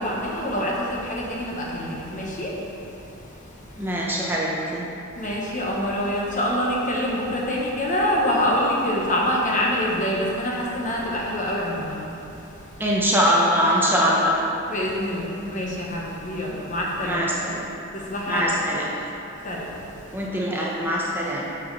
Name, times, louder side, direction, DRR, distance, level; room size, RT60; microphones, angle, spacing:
voice 1, 0.0-3.9 5.1-12.8 14.7-17.2 17.9-18.5 19.3-20.3, equal, 40° left, -3 dB, 1.2 m, -26 dB
voice 2, 3.8-4.8 7.3-7.4 12.8-14.4 17.0-17.7 18.3-18.9 20.1-21.5, equal, 10° right, -5 dB, 0.8 m, -22 dB
8.1 x 4.6 x 5.5 m, 2.9 s
head